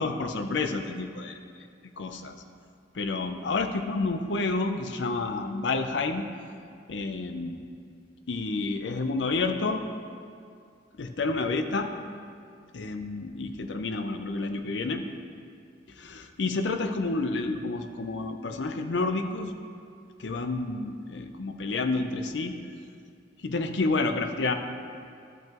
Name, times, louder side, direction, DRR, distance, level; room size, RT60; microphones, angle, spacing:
voice 1, 0.0-1.7 2.0-2.4 2.9-6.3 6.9-7.6 8.3-9.8 11.0-11.9 12.7-15.1 16.0-19.5 20.2-22.6 23.4-24.5, left 3 dB, 70° left, 7 dB, 0.6 m, -29 dB
13.0 x 5.9 x 3.0 m, 2.3 s
head